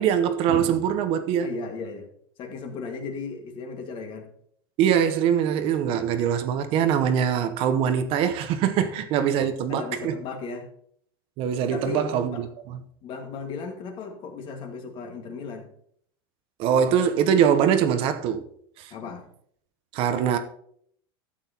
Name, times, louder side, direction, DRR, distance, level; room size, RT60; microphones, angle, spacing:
voice 1, 0.0-1.5 4.8-10.2 11.4-12.4 12.7-12.8 16.6-18.5 18.8-18.9 19.9-20.4, right 8 dB, 50° right, 0.8 m, -23 dB
voice 2, 1.4-2.1 2.4-4.3 8.7-9.0 9.3-10.7 11.7-12.1 12.3-12.4 13.0-15.7 18.9-19.3, left 4 dB, 40° left, 1.8 m, -36 dB
12.5 x 7.9 x 2.9 m
supercardioid pair, 130°, 12 cm